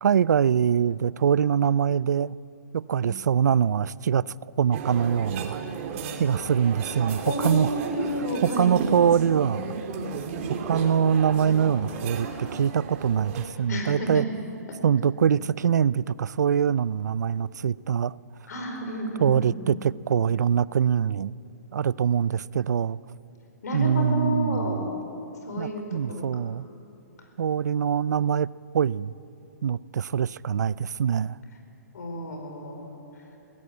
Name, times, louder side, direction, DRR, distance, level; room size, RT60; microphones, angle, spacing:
voice 1, 0.0-2.4 2.7-5.6 6.2-7.7 8.4-9.8 10.5-14.3 14.8-18.1 19.2-21.3 21.7-23.0 23.7-24.9 25.6-26.7 27.4-29.1 29.6-31.4, right 8 dB, 80° right, 22 dB, 0.4 m, -24 dB
sound 1, 4.7-13.5, right 5 dB, 45° right, 2.7 m, -34 dB
voice 2, 7.2-8.7 13.7-14.2 18.5-19.7 23.6-25.0 25.4-26.2 31.9-32.8, left 1 dB, 75° left, 4 dB, 5.0 m, -31 dB
21.0 x 16.0 x 8.5 m, 2.9 s
hypercardioid pair, 135°, 9 cm